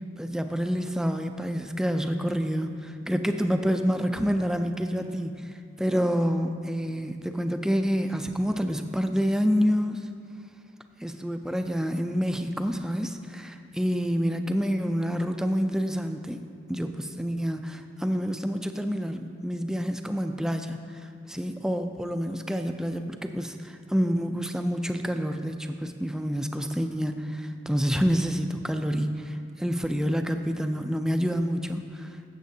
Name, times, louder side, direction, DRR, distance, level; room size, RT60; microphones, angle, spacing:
voice 1, 0.2-10.0 11.0-29.2 29.6-32.1, equal, 5° right, 6 dB, 0.4 m, -28 dB
15.5 x 7.4 x 2.7 m, 2.4 s
head